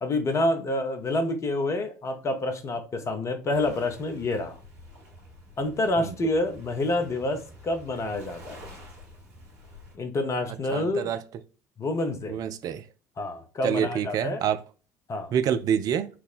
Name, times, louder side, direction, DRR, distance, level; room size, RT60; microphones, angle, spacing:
voice 1, 0.0-4.6 5.6-8.6 9.9-11.1 11.8-12.4 13.2-14.4 15.1-15.3, left 2 dB, 35° left, 0.8 m, -28 dB
Waves surf, 3.5-10.0, left 1 dB, 70° right, 1.7 m, -48 dB
voice 2, 10.7-11.2 12.3-12.8 13.6-14.6 15.3-16.1, right 9 dB, 45° right, 0.4 m, -27 dB
5.9 x 2.1 x 2.4 m
figure-of-eight pair, 60°, 9 cm